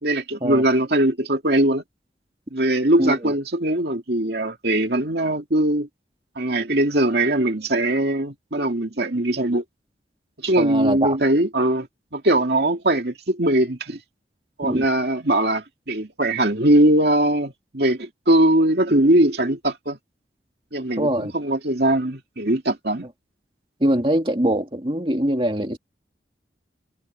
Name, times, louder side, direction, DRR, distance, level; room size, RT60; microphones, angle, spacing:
voice 1, 0.0-1.8 2.5-5.9 6.4-9.6 10.4-11.9 12.1-14.0 14.6-20.0 20.7-23.1, right 1 dB, 60° right, 2.5 m, -21 dB
voice 2, 3.0-3.3 10.6-11.2 14.7-14.8 21.0-21.3 23.8-25.8, right 1 dB, 30° right, 2.6 m, -23 dB
head